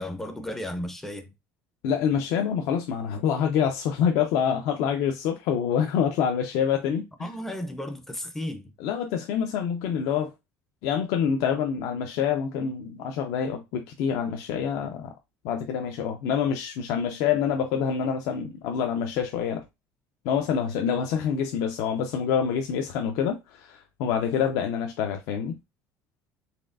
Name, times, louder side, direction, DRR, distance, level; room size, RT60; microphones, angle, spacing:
voice 1, 0.0-1.3 7.2-8.7, left 1 dB, 5° left, 0.4 m, -34 dB
voice 2, 1.8-7.3 8.8-10.3 10.8-15.1 15.4-19.6 20.2-25.6, left 7 dB, 65° left, 0.5 m, -26 dB
4.2 x 3.2 x 2.4 m
cardioid pair, 175°, 6 cm